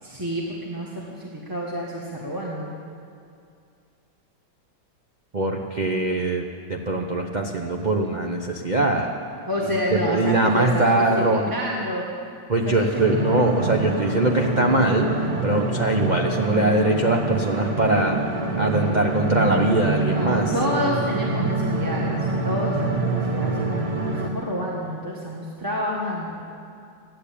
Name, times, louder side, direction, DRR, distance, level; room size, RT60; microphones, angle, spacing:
voice 1, 0.0-2.7 9.5-12.1 12.6-13.2 18.4-19.0 20.0-22.2 22.4-26.4, equal, 10° right, -4 dB, 1.2 m, -29 dB
voice 2, 5.3-6.4 6.7-9.1 9.9-11.5 12.5-15.1 15.4-18.2 18.6-20.5, right 2 dB, 75° right, 1 dB, 0.4 m, -22 dB
sound 1, 12.9-24.3, right 2 dB, 30° right, 0.7 m, -26 dB
13.0 x 10.5 x 8.5 m, 2.3 s
omnidirectional pair, 2.1 m